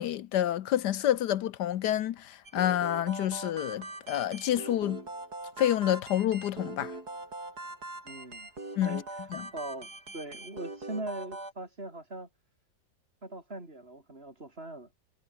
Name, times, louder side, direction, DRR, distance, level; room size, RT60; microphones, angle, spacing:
voice 1, 0.0-5.0 5.6-6.9 8.8-9.0 9.3-9.5, left 12 dB, 70° left, 1.3 m, -28 dB
sound 1, 2.4-11.5, right 2 dB, 55° right, 7.8 m, -42 dB
voice 2, 8.1-8.5 8.8-12.3 13.2-14.9, right 2 dB, 30° right, 5.3 m, -41 dB
omnidirectional pair, 2.0 m